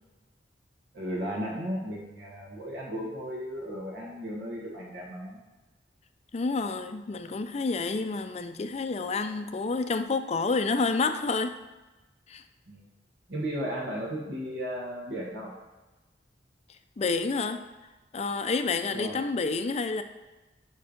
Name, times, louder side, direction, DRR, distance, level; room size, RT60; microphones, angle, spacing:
voice 1, 0.9-5.4 12.7-12.8 13.3-15.5 18.9-19.2, equal, 75° right, -3 dB, 1.3 m, -35 dB
voice 2, 6.3-11.5 12.3-12.4 17.0-17.6 18.1-20.0, left 4 dB, 35° left, 8 dB, 0.4 m, -29 dB
5.5 x 4.3 x 5.1 m, 1.1 s
head